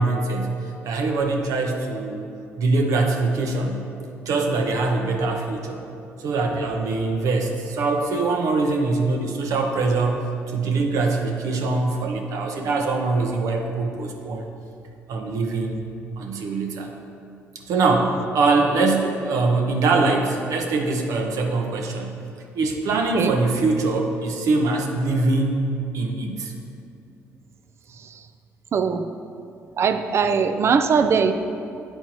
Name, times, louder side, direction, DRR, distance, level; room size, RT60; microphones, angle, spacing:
voice 1, 0.0-2.2 2.6-3.8 4.3-5.8 6.2-14.5 15.1-15.8 16.2-16.9 17.7-22.1 22.5-25.6 25.9-26.5, right 3 dB, 70° right, 2 dB, 0.9 m, -23 dB
voice 2, 28.7-29.0 29.8-31.3, right 6 dB, 50° right, 9 dB, 0.5 m, -20 dB
9.0 x 4.5 x 4.3 m, 2.5 s
supercardioid pair, 75°, 6 cm